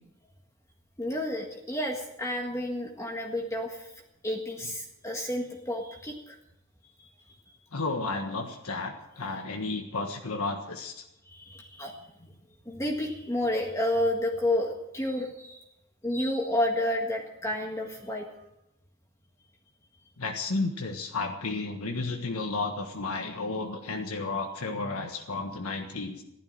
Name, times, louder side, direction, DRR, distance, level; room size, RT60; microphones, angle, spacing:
voice 1, 1.0-6.3 6.8-7.1 11.3-12.3 12.7-15.6 16.0-18.3, left 1 dB, 15° left, 1 dB, 1.7 m, -31 dB
voice 2, 7.7-11.0 20.2-26.2, left 3 dB, 90° left, 3 dB, 1.6 m, -32 dB
15.0 x 12.5 x 7.5 m, 0.87 s
head